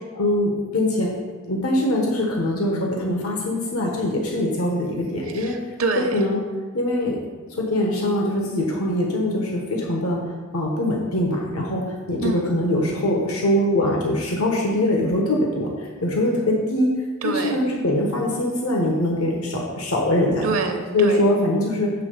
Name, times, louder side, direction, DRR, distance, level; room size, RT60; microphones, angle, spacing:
voice 1, 0.1-1.1 1.5-5.6 6.1-6.4 6.7-7.2 7.5-10.2 10.5-16.9 17.2-20.5 20.9-21.9, left 1 dB, 80° left, -1 dB, 1.2 m, -22 dB
voice 2, 5.3-6.2 12.2-12.6 17.2-17.6 20.4-21.2, right 3 dB, 70° right, 5 dB, 0.9 m, -26 dB
7.4 x 3.8 x 6.5 m, 1.4 s
head